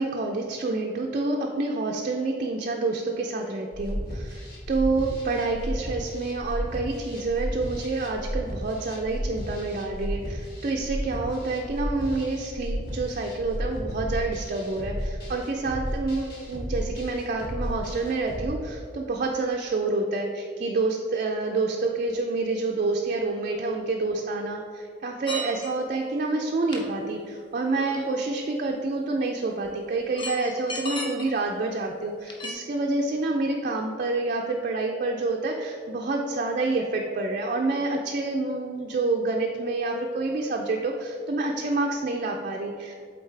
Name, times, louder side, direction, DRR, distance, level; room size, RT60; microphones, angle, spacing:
voice 1, 0.0-42.9, right 3 dB, 40° right, 1 dB, 0.4 m, -28 dB
sound 1, 3.7-18.5, equal, 50° left, 1.5 m, -33 dB
sound 2, 25.3-25.9 26.7-26.8 27.8-28.3 29.6-29.7 30.1-31.3 32.2-32.5, left 1 dB, 25° left, 0.7 m, -34 dB
8.0 x 3.9 x 3.3 m, 2.1 s
head